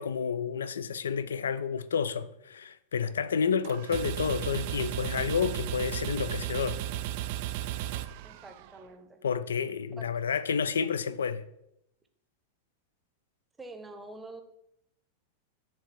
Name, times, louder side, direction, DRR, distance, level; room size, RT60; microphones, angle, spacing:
voice 1, 0.0-6.8 9.2-11.4, left 6 dB, 70° left, 0.4 m, -30 dB
sound 1, 3.6-8.8, right 13 dB, 50° right, 0.3 m, -35 dB
voice 2, 8.2-9.2 10.0-10.3 13.6-14.4, right 2 dB, 10° right, 0.8 m, -46 dB
6.4 x 3.5 x 6.0 m
figure-of-eight pair, 90°, 0 cm